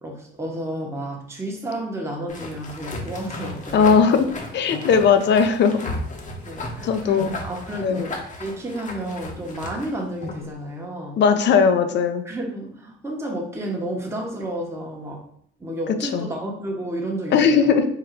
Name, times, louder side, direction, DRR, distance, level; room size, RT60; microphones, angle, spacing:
voice 1, 0.0-4.1 6.4-11.2 12.2-15.2 15.6-17.7, right 1 dB, 15° right, -1 dB, 0.8 m, -31 dB
sound 1, 2.3-10.5, left 2 dB, 40° left, 0.8 m, -35 dB
voice 2, 3.7-4.3 4.5-5.8 6.8-7.3 7.8-8.0 11.2-12.2 16.1-16.3 17.3-17.9, left 6 dB, 65° left, 8 dB, 0.5 m, -18 dB
3.7 x 2.2 x 4.4 m, 0.65 s
cardioid pair, 90°, 20 cm